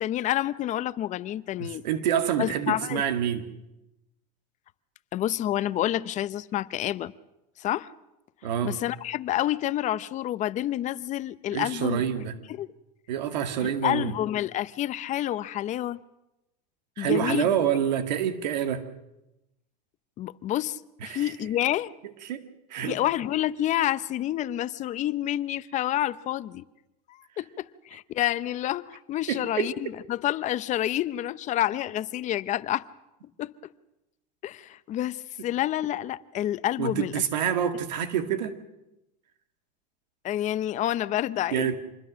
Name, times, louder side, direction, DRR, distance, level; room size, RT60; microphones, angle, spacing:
voice 1, 0.0-1.8 2.4-3.0 5.1-7.1 7.6-7.9 8.6-12.0 12.5-12.7 13.6-16.0 17.0-17.5 20.2-21.9 22.8-26.6 27.1-32.8 33.4-33.5 34.4-37.2 40.2-41.7, left 13 dB, 35° left, 0.8 m, -28 dB
voice 2, 1.6-3.5 8.4-8.8 11.5-12.3 13.1-14.1 17.0-18.9 21.0-21.3 22.2-22.4 22.7-23.0 29.3-29.7 36.8-38.6 41.5-41.7, right 9 dB, 90° right, 2.2 m, -27 dB
26.5 x 20.5 x 6.4 m
supercardioid pair, 125°, 21 cm